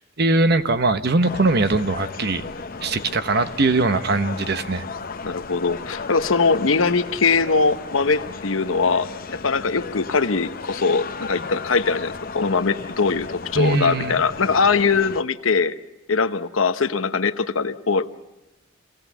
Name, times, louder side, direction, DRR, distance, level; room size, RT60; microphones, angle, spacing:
voice 1, 0.2-2.4 2.8-4.8 13.6-14.2, right 3 dB, 55° right, 10 dB, 1.0 m, -21 dB
sound 1, 1.2-15.2, left 4 dB, 45° left, 0.8 m, -35 dB
voice 2, 5.2-15.7 16.1-18.2, left 4 dB, 85° left, 11 dB, 0.9 m, -21 dB
25.5 x 18.0 x 7.0 m, 1.0 s
head